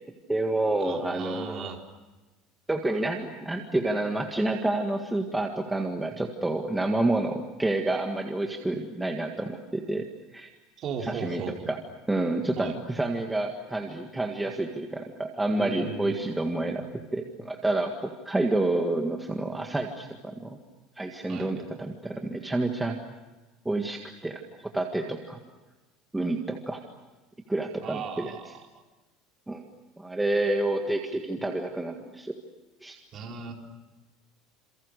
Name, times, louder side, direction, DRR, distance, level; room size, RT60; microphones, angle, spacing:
voice 1, 0.3-1.7 2.7-10.1 10.3-10.5 11.0-11.8 12.1-20.6 21.0-23.0 23.7-25.4 26.1-26.8 27.5-28.3 29.5-29.7 30.0-32.3 32.8-33.0, right 2 dB, 5° right, 2 dB, 1.8 m, -29 dB
voice 2, 0.8-1.8 10.8-11.7 12.6-12.8 15.5-17.0 21.3-21.5 27.8-28.6 33.1-33.5, right 6 dB, 35° right, 1 dB, 4.5 m, -37 dB
28.5 x 28.0 x 6.6 m, 1.2 s
cardioid pair, 160°, 0 cm